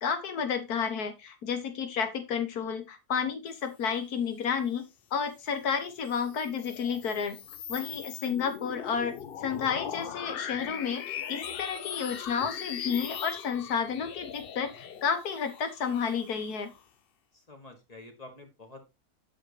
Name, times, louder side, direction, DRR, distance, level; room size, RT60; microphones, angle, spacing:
voice 1, 0.0-4.8 5.1-7.4 7.7-16.7, left 6 dB, 80° left, 8 dB, 1.6 m, -31 dB
sound 1, 5.9-16.8, left 8 dB, 65° left, 0.5 m, -40 dB
voice 2, 17.3-18.8, left 2 dB, 25° left, 5 dB, 1.5 m, -49 dB
7.6 x 6.4 x 3.1 m, 0.24 s
omnidirectional pair, 1.6 m